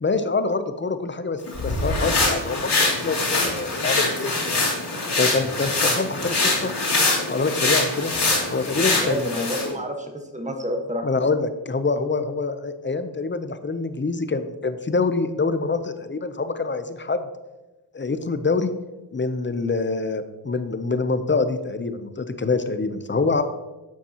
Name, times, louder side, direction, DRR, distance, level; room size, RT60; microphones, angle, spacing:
voice 1, 0.0-4.7 5.2-6.7 7.2-8.1 8.5-9.5 11.0-17.2 17.9-18.7 19.1-23.4, left 3 dB, 25° left, 10 dB, 0.6 m, -25 dB
sound 1, 1.5-9.7, left 2 dB, 60° left, 2.8 m, -23 dB
voice 2, 8.9-11.0, equal, 15° right, 4 dB, 1.4 m, -29 dB
10.5 x 7.1 x 2.9 m, 1.1 s
wide cardioid pair, 75°, 46 cm